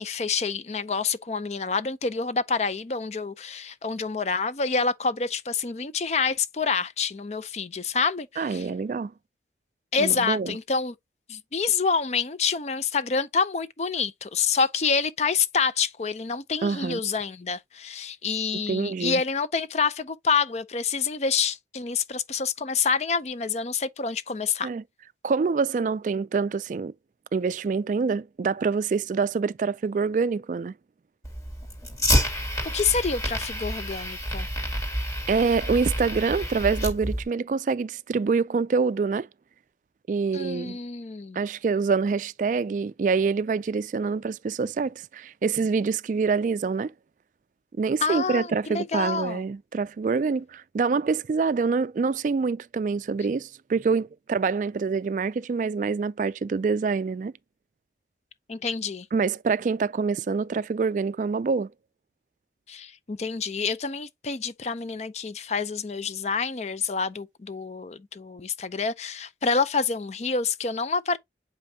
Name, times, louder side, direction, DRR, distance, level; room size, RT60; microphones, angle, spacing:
voice 1, 0.0-8.7 9.9-10.9 11.3-24.7 32.3-32.4 32.7-34.5 40.3-41.4 48.0-49.4 58.5-59.1 62.7-71.2, left 5 dB, 40° left, 0.5 m, -27 dB
voice 2, 8.4-9.1 10.0-10.6 16.6-17.0 18.7-19.2 24.6-24.8 25.2-26.9 27.3-30.7 35.3-39.3 40.1-40.8 41.3-46.9 47.8-57.3 59.1-61.7, right 5 dB, 45° right, 0.3 m, -26 dB
Fire, 31.2-37.2, equal, 20° left, 1.9 m, -28 dB
7.4 x 5.3 x 2.7 m
head